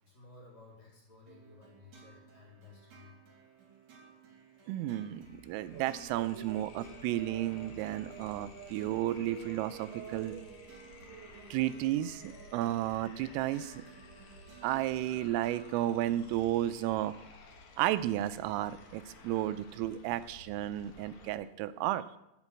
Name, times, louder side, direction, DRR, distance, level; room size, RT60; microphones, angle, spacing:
voice 1, 0.0-3.2, left 3 dB, 35° left, -4 dB, 5.0 m, -56 dB
sound 1, 1.3-16.7, right 3 dB, 40° right, 4.9 m, -57 dB
sound 2, 4.3-4.4 4.6-21.3, left 4 dB, 85° left, 1.5 m, -55 dB
voice 2, 4.7-10.4 11.5-13.9 14.6-17.1 17.8-22.2, right 13 dB, 85° right, 12 dB, 3.3 m, -33 dB
sound 3, 5.1-21.3, right 8 dB, 70° right, 3.7 m, -53 dB
12.0 x 8.9 x 8.5 m, 0.86 s
omnidirectional pair, 5.8 m